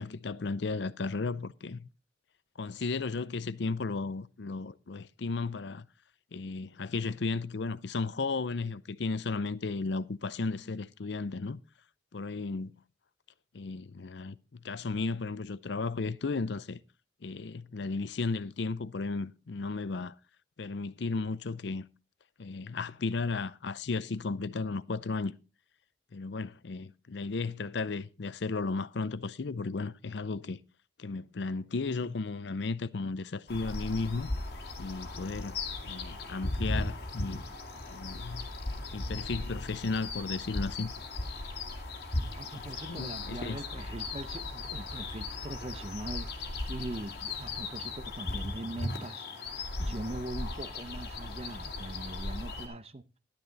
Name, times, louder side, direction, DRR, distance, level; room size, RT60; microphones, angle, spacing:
voice 1, 0.0-1.9 2.6-5.9 6.3-11.6 12.1-12.7 13.5-16.8 17.2-20.1 20.6-21.8 22.4-25.3 26.1-30.6 31.0-34.3 34.8-35.6 35.8-37.4 37.9-38.5 38.9-40.9 42.5-43.6, left 3 dB, 70° left, 0.6 m, -34 dB
sound 1, 33.5-52.7, left 2 dB, 55° left, 2.5 m, -37 dB
voice 2, 42.4-53.0, right 1 dB, 35° right, 0.7 m, -41 dB
12.0 x 10.5 x 4.0 m
head